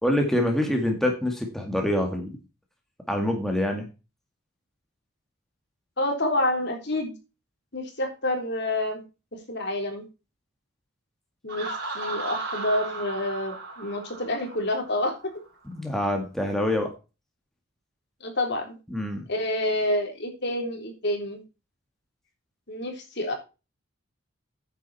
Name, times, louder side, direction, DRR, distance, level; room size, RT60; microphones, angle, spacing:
voice 1, 0.0-2.3 3.1-3.8 15.7-16.9 18.9-19.3, left 1 dB, ahead, 2 dB, 2.1 m, -25 dB
voice 2, 6.0-7.1 7.7-9.0 9.5-10.0 11.4-15.2 18.2-18.7 19.3-21.4 22.7-23.3, left 1 dB, 55° left, 3 dB, 3.6 m, -28 dB
Laughter, 11.5-15.2, right 3 dB, 55° right, 4.7 m, -35 dB
9.9 x 8.0 x 4.3 m, 0.29 s
head